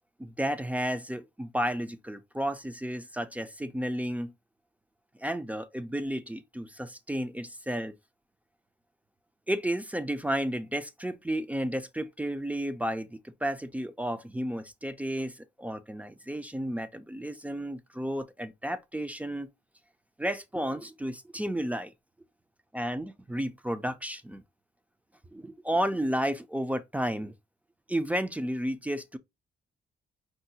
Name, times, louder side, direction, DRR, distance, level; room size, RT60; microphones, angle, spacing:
voice 1, 0.2-4.3 5.2-7.9 9.5-19.5 20.2-21.9 22.7-24.4 25.3-27.3 27.9-29.2, equal, 5° right, 0.3 m, -32 dB
4.6 x 2.0 x 2.7 m
cardioid pair, 90°, 20 cm